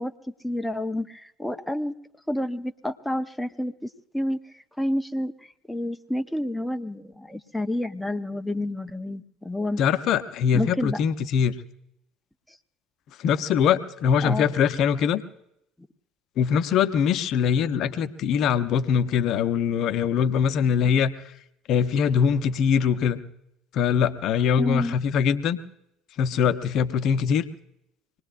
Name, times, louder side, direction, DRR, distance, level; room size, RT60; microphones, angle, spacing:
voice 1, 0.0-1.9 2.3-9.8 10.5-11.0 12.5-12.6 14.2-14.5 24.6-25.0, left 1 dB, 5° left, 7 dB, 0.7 m, -29 dB
voice 2, 9.8-11.5 13.2-15.2 16.4-21.1 21.7-23.2 23.7-25.6 26.2-27.4, left 7 dB, 55° left, 11 dB, 0.7 m, -22 dB
25.0 x 19.5 x 2.5 m, 0.79 s
hypercardioid pair, 65°, 0 cm